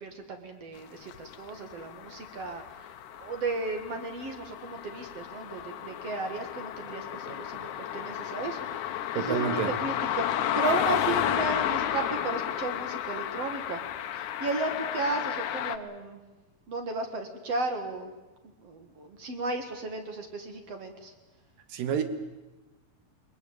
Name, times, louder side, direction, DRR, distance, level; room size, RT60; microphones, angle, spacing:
voice 1, 0.0-13.8 14.1-16.2 16.7-18.1 18.6-21.1, right 3 dB, 50° right, 5 dB, 2.6 m, -34 dB
sound 1, 1.1-15.8, left 11 dB, 70° left, 2.2 m, -32 dB
voice 2, 9.1-9.7 21.7-22.0, right 8 dB, 75° right, 9 dB, 3.3 m, -28 dB
22.0 x 21.0 x 8.9 m, 1.1 s
omnidirectional pair, 4.1 m